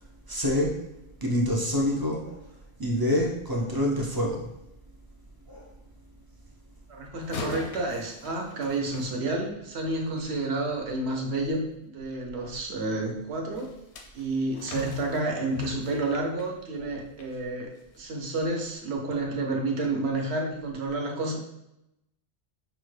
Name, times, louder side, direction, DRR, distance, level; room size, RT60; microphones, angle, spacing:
voice 1, 0.3-0.7 1.2-2.4 2.8-4.5 5.5-5.6 9.9-10.0 12.3-12.4, left 1 dB, 35° right, -1 dB, 0.3 m, -26 dB
voice 2, 6.9-13.7 14.1-21.4, right 2 dB, 70° right, 1 dB, 1.0 m, -30 dB
sound 1, 7.2-9.8 13.5-17.3 17.7-18.0 18.5-18.6, left 3 dB, 75° left, 0.9 m, -41 dB
5.5 x 2.1 x 3.1 m, 0.85 s
omnidirectional pair, 1.2 m